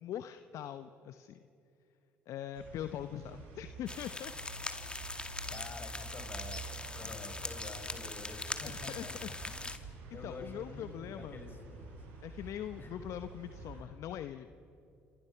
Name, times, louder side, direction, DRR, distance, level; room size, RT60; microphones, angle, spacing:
voice 1, 0.0-1.4 2.3-4.3 7.0-7.1 8.6-10.0 10.2-11.4 12.2-14.5, left 10 dB, 65° left, 10 dB, 0.9 m, -42 dB
sound 1, 2.5-13.8, right 3 dB, 85° right, 5.4 m, -48 dB
sound 2, 3.9-9.8, left 2 dB, 15° left, 2.1 m, -42 dB
voice 2, 5.5-9.7 10.1-12.0 12.4-12.5 12.8-12.9, left 3 dB, 40° left, 5 dB, 5.6 m, -48 dB
28.0 x 27.5 x 5.8 m, 2.8 s
hypercardioid pair, 60°, 6 cm